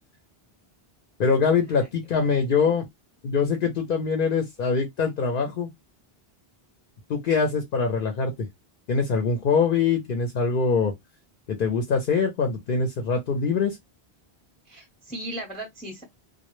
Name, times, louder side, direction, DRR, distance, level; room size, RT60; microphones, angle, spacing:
voice 1, 1.2-2.8 3.2-5.7 7.1-8.5 8.9-10.9 11.5-13.8, left 5 dB, 60° left, 0.7 m, -23 dB
voice 2, 2.3-2.7 14.7-16.0, right 1 dB, 10° left, 0.7 m, -37 dB
2.2 x 2.1 x 2.9 m
omnidirectional pair, 1.1 m